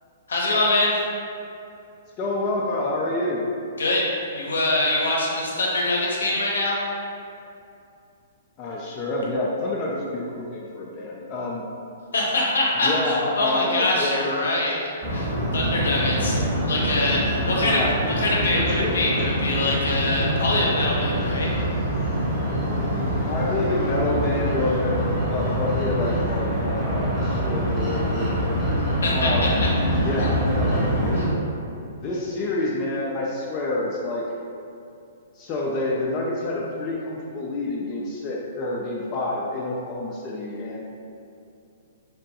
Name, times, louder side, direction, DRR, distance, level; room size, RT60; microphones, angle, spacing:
voice 1, 0.3-0.9 3.8-4.0 4.3-6.8 12.1-14.8 15.1-16.3 16.7-17.8 18.2-21.5 29.0-29.5, left 2 dB, 70° left, -3 dB, 0.7 m, -24 dB
voice 2, 2.2-3.4 8.6-11.7 12.8-14.4 16.2-18.0 18.5-18.9 23.2-28.7 29.1-29.6 30.0-31.2 32.0-34.3 35.3-40.8, left 2 dB, 30° left, -4 dB, 0.3 m, -28 dB
sound 1, 15.0-31.3, equal, 20° right, 1.0 m, -25 dB
3.2 x 2.1 x 2.8 m, 2.6 s
figure-of-eight pair, 120°, 0 cm